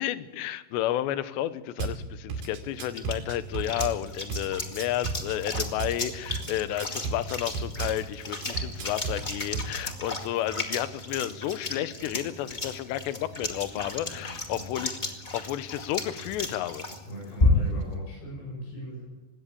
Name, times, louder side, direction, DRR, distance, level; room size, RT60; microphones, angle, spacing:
voice 1, 0.0-15.0 15.3-16.8, left 13 dB, 90° left, 13 dB, 3.1 m, -31 dB
Drum kit / Bass drum, 1.8-2.0 2.3-4.0 4.3-6.0 6.3-8.0 8.4-9.7, right 5 dB, 65° right, 4.2 m, -33 dB
sound 1, 2.3-17.9, left 2 dB, 50° left, 0.5 m, -33 dB
voice 2, 14.0-14.7 17.0-19.0, equal, 65° left, -3 dB, 9.4 m, -40 dB
20.0 x 17.0 x 8.5 m, 1.1 s
omnidirectional pair, 4.9 m